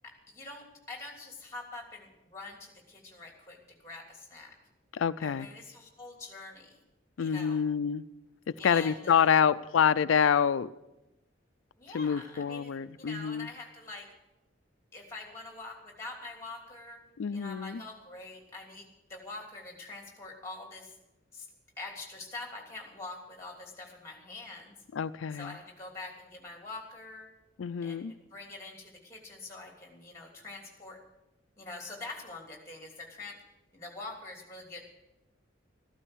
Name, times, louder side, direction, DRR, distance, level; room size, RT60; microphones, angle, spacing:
voice 1, 0.0-4.5 5.2-6.8 7.2-7.6 8.6-9.3 11.8-12.7 13.0-14.1 14.9-17.0 17.3-21.0 21.3-21.5 21.8-24.7 25.3-27.3 27.8-31.0 31.6-33.4 33.7-34.8, left 2 dB, 15° left, 1 dB, 3.0 m, -45 dB
voice 2, 4.9-5.5 7.2-8.0 8.6-10.7 11.9-13.5 17.2-17.8 24.9-25.6 27.6-28.1, left 7 dB, 90° left, 12 dB, 0.4 m, -27 dB
14.5 x 12.5 x 6.2 m, 0.95 s
head